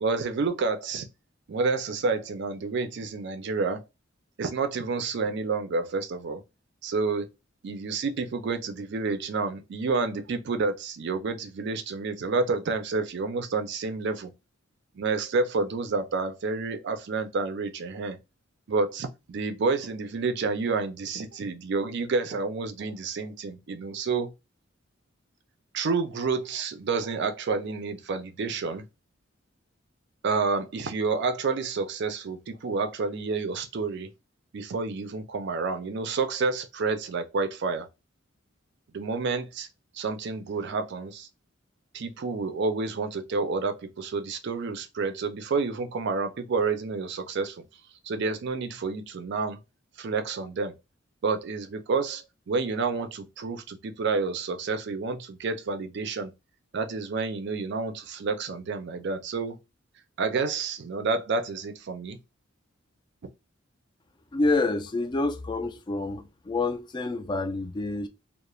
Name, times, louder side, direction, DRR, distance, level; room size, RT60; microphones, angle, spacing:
voice 1, 0.0-1.1 1.5-3.8 4.4-6.4 6.8-7.3 7.6-14.3 15.0-18.2 18.7-24.3 25.7-28.8 30.2-34.1 34.5-37.9 38.9-39.7 39.9-41.3 41.9-47.6 48.0-49.6 50.0-50.7 51.2-56.3 56.7-59.6 60.2-62.2, right 4 dB, 60° right, 0.4 m, -29 dB
voice 2, 64.3-68.1, left 3 dB, 25° left, 0.3 m, -28 dB
2.3 x 2.0 x 3.0 m
head